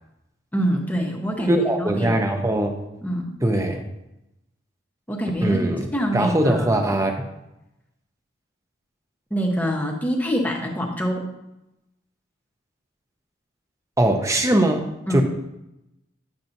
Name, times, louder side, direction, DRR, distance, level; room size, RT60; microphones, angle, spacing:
voice 1, 0.5-2.2 3.0-3.3 5.1-6.9 9.3-11.3 15.1-15.2, equal, 10° left, 1 dB, 0.9 m, -25 dB
voice 2, 1.4-2.8 3.4-3.8 5.4-5.9 6.1-7.1 14.0-15.2, right 1 dB, 15° right, 5 dB, 0.7 m, -21 dB
10.5 x 7.2 x 2.7 m, 0.90 s
head